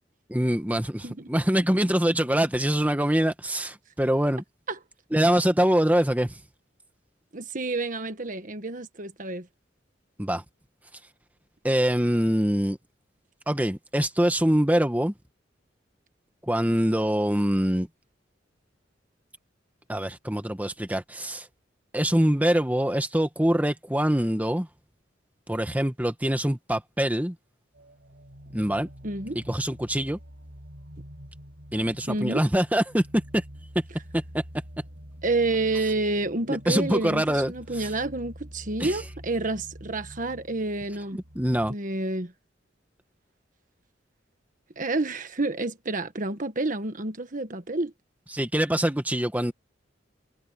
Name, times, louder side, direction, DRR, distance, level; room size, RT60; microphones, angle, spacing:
voice 1, 0.3-4.4 5.1-6.4 10.2-10.4 11.6-12.8 13.5-15.1 16.4-17.9 19.9-21.5 21.9-24.7 25.5-27.3 28.5-28.9 29.3-30.2 31.7-33.1 33.3-33.4 34.1-34.4 36.7-37.9 38.8-39.0 41.1-41.7 48.3-49.5, equal, 10° right, 1.5 m, -24 dB
voice 2, 7.3-9.5 29.0-29.4 32.1-32.4 35.2-41.2 41.7-42.3 44.8-47.9, right 2 dB, 45° right, 1.5 m, -29 dB
sound 1, 27.7-41.7, equal, 65° right, 5.4 m, -46 dB
head